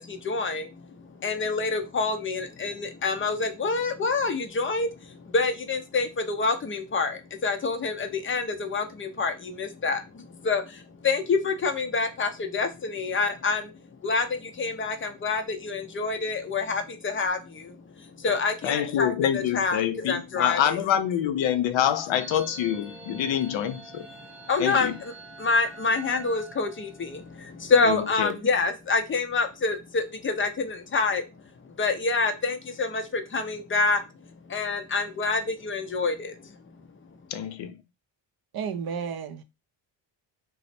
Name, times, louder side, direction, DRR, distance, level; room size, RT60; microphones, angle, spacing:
voice 1, 0.0-13.7 14.0-20.8 24.2-25.1 25.4-31.3 31.6-34.0 34.5-36.6, left 4 dB, 30° left, 0.4 m, -27 dB
voice 2, 18.6-24.1 24.6-24.9 27.8-28.3 37.3-37.8, left 10 dB, 75° left, 0.6 m, -26 dB
sound 1, 22.1-27.5, right 3 dB, ahead, 0.7 m, -46 dB
voice 3, 38.5-39.4, right 6 dB, 55° right, 0.5 m, -32 dB
3.0 x 2.0 x 4.1 m
cardioid pair, 140°, 46 cm